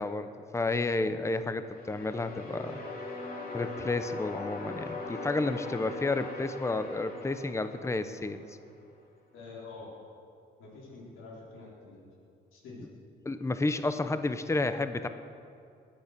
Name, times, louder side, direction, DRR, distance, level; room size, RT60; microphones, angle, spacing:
voice 1, 0.0-2.8 3.5-8.6 13.2-15.1, left 2 dB, 15° left, 10 dB, 0.8 m, -31 dB
sound 1, 1.6-8.7, left 2 dB, 45° left, 3.1 m, -41 dB
voice 2, 2.5-2.9 9.3-9.9 10.6-12.0 12.5-12.9, left 3 dB, 90° left, -5 dB, 4.4 m, -47 dB
21.0 x 8.5 x 6.9 m, 2.4 s
cardioid pair, 90°, 20 cm